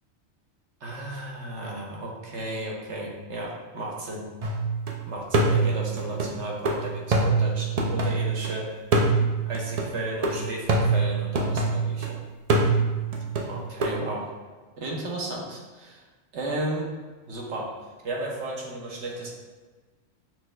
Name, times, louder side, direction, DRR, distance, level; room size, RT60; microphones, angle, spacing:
voice 1, 0.8-4.3 5.1-8.8 9.4-12.2 13.4-14.3 14.8-16.0 16.3-16.9 17.3-17.7 18.0-19.3, right 1 dB, 70° right, -1 dB, 1.1 m, -34 dB
sound 1, 4.4-4.9 5.3-8.5 8.9-12.1 12.5-14.0, right 3 dB, 55° right, 0.4 m, -24 dB
6.1 x 2.2 x 3.2 m, 1.3 s
omnidirectional pair, 1.2 m